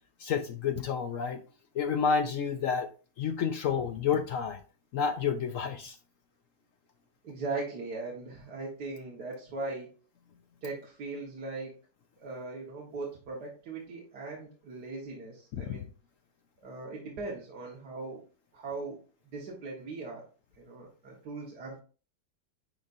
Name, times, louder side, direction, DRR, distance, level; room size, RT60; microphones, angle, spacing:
voice 1, 0.2-1.4 1.8-2.9 3.2-4.6 4.9-6.0 15.7-15.8, left 6 dB, 70° left, 8 dB, 0.7 m, -29 dB
voice 2, 7.2-9.9 10.6-11.8 12.2-15.9 16.6-18.2 18.5-19.0 19.3-20.2 20.6-21.8, right 3 dB, 65° right, -2 dB, 1.8 m, -39 dB
10.0 x 4.0 x 2.5 m, 0.37 s
omnidirectional pair, 1.9 m